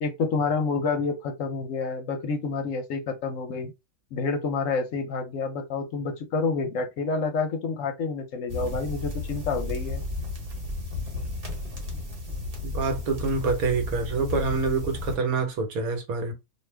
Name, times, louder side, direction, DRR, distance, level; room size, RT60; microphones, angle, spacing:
voice 1, 0.0-3.7 4.1-10.0, left 4 dB, 65° left, 0.9 m, -28 dB
sound 1, 8.5-15.2, left 2 dB, 45° right, 1.0 m, -33 dB
voice 2, 12.6-16.3, right 4 dB, 75° right, 1.3 m, -26 dB
2.6 x 2.3 x 3.2 m
omnidirectional pair, 1.5 m